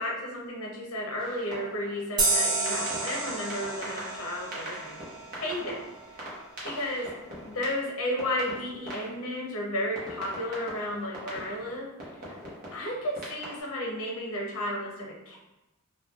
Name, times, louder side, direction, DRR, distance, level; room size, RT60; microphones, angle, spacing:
voice 1, 0.0-5.0 5.3-5.8 6.1-6.2 6.6-7.1 7.5-11.9 12.7-15.4, left 1 dB, 65° left, -2 dB, 0.7 m, -33 dB
sound 1, 1.2-2.0 2.7-9.5 10.0-13.6, right 1 dB, 40° right, 0.8 m, -42 dB
sound 2, 2.2-5.5, right 2 dB, 20° right, 0.4 m, -30 dB
3.1 x 2.2 x 2.3 m, 0.97 s
head